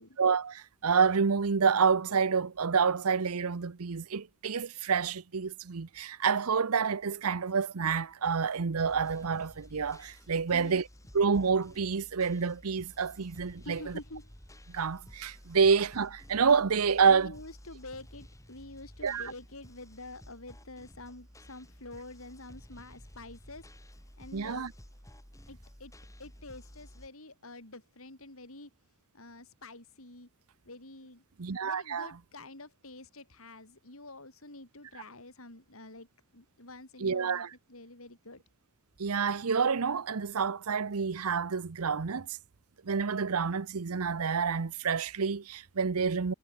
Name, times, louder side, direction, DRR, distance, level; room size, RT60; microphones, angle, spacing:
voice 1, 0.0-10.8 11.1-14.0 14.7-17.3 19.0-19.3 24.3-24.7 31.4-32.1 37.0-37.5 39.0-42.3 42.8-46.3, right 5 dB, 85° right, 0.8 m, -28 dB
sound 1, 8.8-27.1, equal, 15° left, 4.2 m, -53 dB
voice 2, 13.6-14.3 17.1-23.7 24.2-24.7 25.5-25.9 26.2-28.7 29.1-30.3 30.6-31.2 31.6-36.1 36.3-38.4, left 2 dB, 70° left, 6.1 m, -47 dB
head